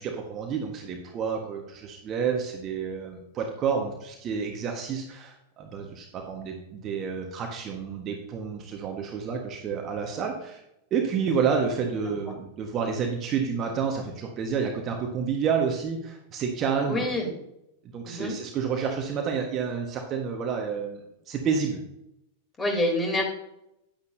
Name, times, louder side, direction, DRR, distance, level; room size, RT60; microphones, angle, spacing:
voice 1, 0.0-10.6 10.9-17.0 17.9-21.8, right 6 dB, 30° right, 2 dB, 1.4 m, -29 dB
voice 2, 16.9-17.3 18.1-18.3 22.6-23.2, left 1 dB, 15° left, 1 dB, 3.3 m, -26 dB
10.5 x 9.8 x 2.8 m, 0.82 s
figure-of-eight pair, 90°, 0 cm